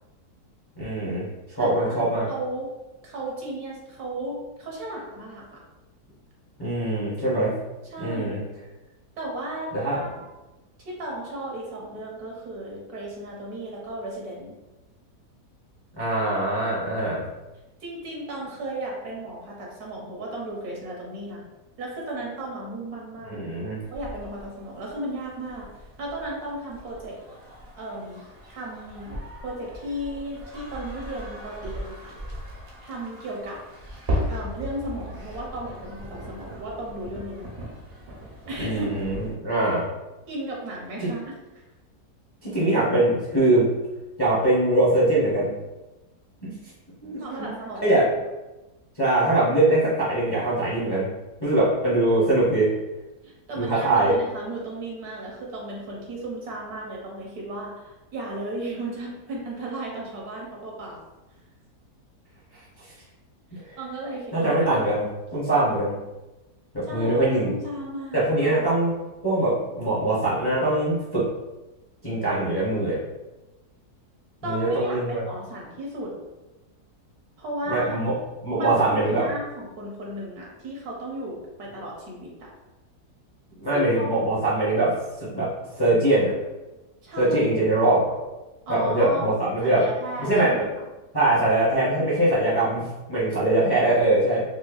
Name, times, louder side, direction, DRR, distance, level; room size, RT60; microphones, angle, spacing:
voice 1, 0.8-2.3 6.6-7.5 8.0-8.4 9.7-10.0 16.0-17.2 23.2-23.8 38.6-39.8 42.4-43.6 44.2-45.5 46.4-46.5 47.0-47.1 47.4-47.5 47.8-48.1 49.0-51.1 51.4-52.7 53.6-54.1 64.3-65.1 65.3-65.9 66.7-67.5 68.1-69.0 69.2-71.2 72.0-73.0 74.4-75.2 77.7-78.2 78.4-79.3 83.6-84.9 85.3-85.5 85.8-86.3 87.2-88.1 88.7-89.8 90.2-90.7 91.1-94.4, right 2 dB, 20° left, -9 dB, 0.8 m, -22 dB
voice 2, 1.6-2.7 3.0-5.6 7.9-8.4 9.2-10.2 10.8-14.5 17.8-21.4 21.8-23.4 23.9-25.7 26.0-27.2 27.7-28.2 28.5-32.1 32.8-33.6 34.3-37.6 38.5-38.9 40.3-41.6 47.2-47.9 53.2-61.0 63.5-65.0 66.8-68.6 74.4-76.1 77.4-77.9 78.5-82.5 83.7-84.3 87.0-87.5 88.7-89.2 89.6-90.8, right 1 dB, 70° right, -2 dB, 1.4 m, -35 dB
sound 1, 23.8-39.3, equal, 45° right, 0.9 m, -37 dB
5.0 x 2.2 x 2.4 m, 1.1 s
omnidirectional pair, 1.7 m